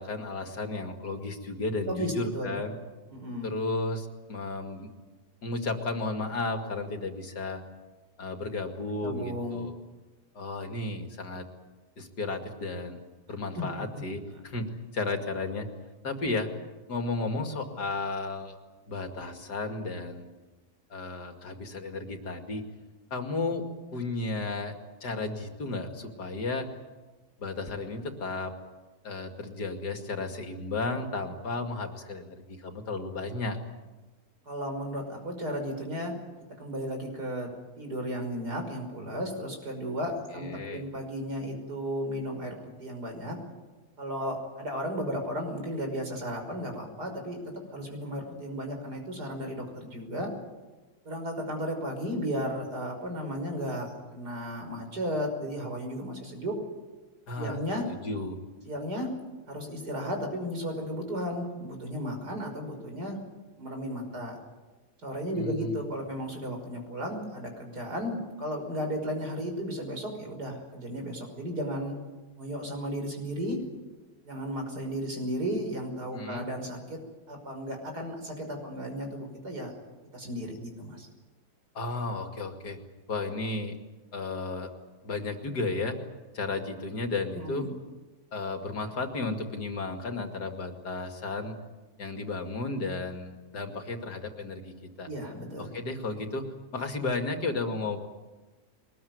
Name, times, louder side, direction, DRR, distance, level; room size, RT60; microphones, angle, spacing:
voice 1, 0.0-2.7 3.4-4.9 5.4-7.6 8.2-9.8 10.3-11.5 12.0-13.0 13.3-15.7 16.0-16.5 16.9-18.6 18.9-20.3 20.9-22.6 23.1-23.7 23.9-24.7 25.0-26.7 27.4-28.5 29.0-33.6 40.3-40.9 57.3-57.6 57.9-58.4 65.3-65.7 76.1-76.4 81.7-82.8 83.1-83.8 84.1-84.7 85.0-86.0 86.3-87.7 88.3-91.5 92.0-95.1 95.6-96.5 96.7-98.1, left 3 dB, 80° left, 5 dB, 2.9 m, -33 dB
voice 2, 1.9-2.6 3.1-3.5 9.0-9.7 13.6-13.7 13.9-14.0 34.5-36.1 36.6-37.5 37.8-43.4 44.0-47.4 47.7-50.3 51.0-56.6 57.4-57.9 58.7-59.1 59.5-63.2 63.6-64.4 65.0-71.9 72.4-73.6 74.2-77.0 77.3-79.7 80.1-81.1 87.3-87.7 95.1-95.7, equal, 75° right, 3 dB, 6.2 m, -34 dB
22.5 x 20.5 x 9.6 m, 1.2 s
omnidirectional pair, 1.7 m